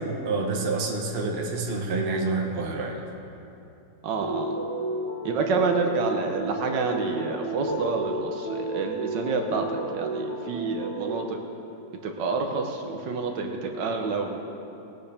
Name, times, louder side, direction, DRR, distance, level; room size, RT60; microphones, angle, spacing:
voice 1, 0.2-3.0, right 3 dB, 40° right, -1 dB, 1.2 m, -27 dB
voice 2, 4.0-4.5 5.2-11.4 12.0-14.4, right 4 dB, 85° right, 3 dB, 1.5 m, -28 dB
sound 1, 4.2-11.2, right 2 dB, 55° right, 2.5 m, -32 dB
20.5 x 8.5 x 3.4 m, 2.9 s
omnidirectional pair, 1.9 m